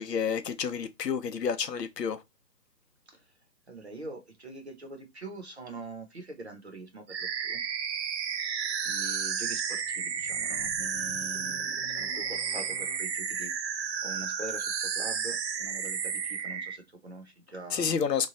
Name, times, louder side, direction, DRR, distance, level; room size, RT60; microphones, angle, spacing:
voice 1, 0.0-2.2 17.7-18.3, left 6 dB, 75° left, 0.7 m, -29 dB
voice 2, 3.7-7.6 8.4-8.5 8.8-13.5 14.0-18.0, right 2 dB, 40° right, 0.7 m, -44 dB
sound 1, 7.1-16.8, right 7 dB, 90° right, 0.7 m, -32 dB
semiq fx, 9.8-13.0, left 2 dB, 30° left, 0.7 m, -49 dB
3.2 x 2.3 x 3.6 m
hypercardioid pair, 175°, 50 cm